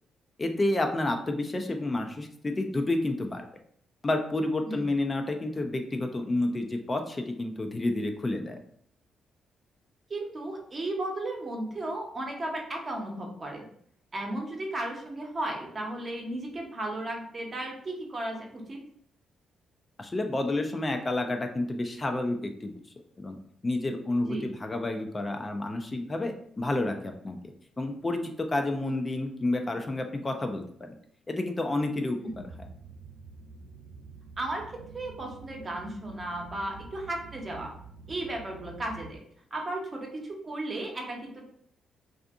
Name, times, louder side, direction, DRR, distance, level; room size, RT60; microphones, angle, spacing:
voice 1, 0.4-3.4 4.0-8.6 20.0-22.7 23.2-23.4 23.6-27.4 27.8-30.9 31.3-32.7, left 2 dB, 30° left, 5 dB, 0.4 m, -30 dB
voice 2, 10.1-13.7 14.1-18.8 24.2-24.4 32.2-32.4 34.4-34.6 34.9-37.7 38.1-39.2 39.5-41.4, right 1 dB, 40° right, 1 dB, 0.8 m, -35 dB
sound 1, 32.3-39.1, right 4 dB, 70° right, 0.7 m, -48 dB
2.5 x 2.5 x 2.4 m, 0.64 s
hypercardioid pair, 45°, 0 cm